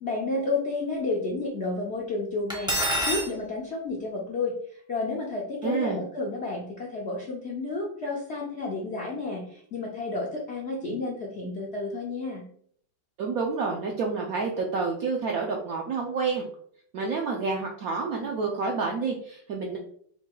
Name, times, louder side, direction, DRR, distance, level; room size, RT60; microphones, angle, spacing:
voice 1, 0.0-4.6 4.9-12.4, left 3 dB, 70° left, -2 dB, 0.6 m, -31 dB
Cutlery silverware, 2.5-3.3, equal, 5° right, 0.4 m, -26 dB
voice 2, 5.6-6.0 13.2-16.5 16.9-19.8, right 4 dB, 75° right, 0 dB, 0.8 m, -29 dB
4.1 x 2.2 x 4.6 m, 0.62 s
omnidirectional pair, 2.1 m